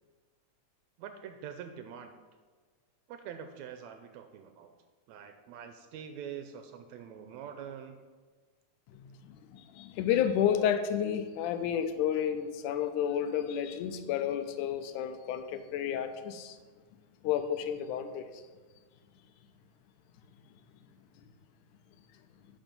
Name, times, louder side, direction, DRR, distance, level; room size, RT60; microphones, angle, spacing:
voice 1, 1.0-2.1 3.1-4.7 5.1-8.0, right 8 dB, 80° right, 7 dB, 1.8 m, -44 dB
voice 2, 9.3-16.6 17.2-18.3, left 9 dB, 85° left, 8 dB, 2.2 m, -31 dB
11.5 x 5.1 x 5.3 m, 1.4 s
omnidirectional pair, 3.5 m